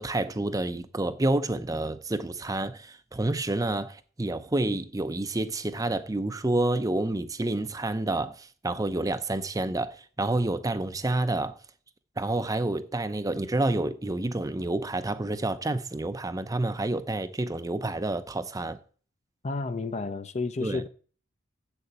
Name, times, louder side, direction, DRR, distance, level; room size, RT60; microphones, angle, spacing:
voice 1, 0.0-11.6 12.2-18.8 20.6-20.8, right 2 dB, 15° right, 0.5 m, -29 dB
voice 2, 19.4-20.9, left 3 dB, 30° left, 0.5 m, -31 dB
7.9 x 6.7 x 7.8 m
head